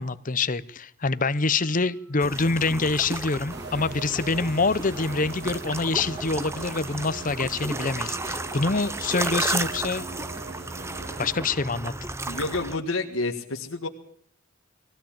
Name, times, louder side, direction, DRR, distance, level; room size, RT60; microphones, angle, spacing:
voice 1, 0.0-10.0 11.2-11.9, left 3 dB, 40° left, 0.8 m, -26 dB
Organ, 1.2-12.2, right 4 dB, 80° right, 3.7 m, -60 dB
sound 1, 2.2-12.8, right 2 dB, 15° right, 0.8 m, -33 dB
sound 2, 3.5-11.4, right 3 dB, 55° right, 1.3 m, -41 dB
voice 2, 12.3-13.9, left 3 dB, 75° left, 1.8 m, -29 dB
21.0 x 16.0 x 8.8 m
head